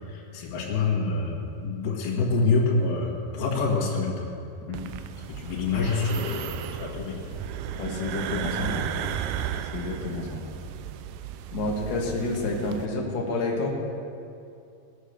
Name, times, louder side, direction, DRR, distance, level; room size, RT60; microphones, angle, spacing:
voice 1, 0.1-4.3 5.3-7.3, left 3 dB, 70° left, -2 dB, 3.7 m, -26 dB
sound 1, 4.7-12.9, right 10 dB, 85° right, 2.5 m, -35 dB
voice 2, 7.7-8.9 9.7-10.4 11.5-13.7, left 2 dB, 50° left, -1 dB, 1.3 m, -29 dB
18.5 x 7.8 x 6.6 m, 2.5 s
omnidirectional pair, 4.8 m